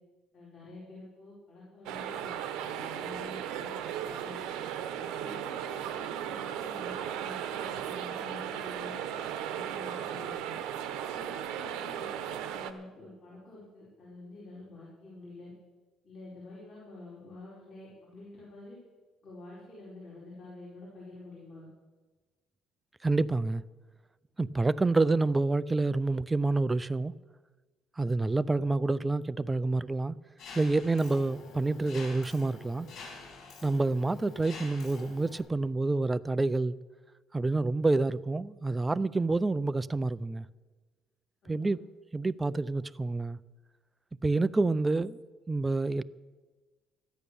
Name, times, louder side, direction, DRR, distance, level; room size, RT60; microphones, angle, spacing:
voice 1, 0.3-3.7 4.0-4.4 5.1-9.0 9.4-10.6 11.0-15.5 16.0-18.8 19.2-21.7 41.4-41.7, left 2 dB, 35° left, 4.7 m, -48 dB
sound 1, 1.9-12.7, right 9 dB, 90° right, 0.9 m, -36 dB
voice 2, 23.0-23.6 24.4-27.1 28.0-30.2 30.6-32.9 33.6-36.8 37.3-40.4 41.5-41.8 42.1-43.4 44.2-45.2 45.5-46.0, right 3 dB, 15° right, 0.3 m, -28 dB
Mechanisms, 30.4-35.4, left 4 dB, 55° left, 3.9 m, -47 dB
13.5 x 10.0 x 6.9 m
cardioid pair, 145°, 0 cm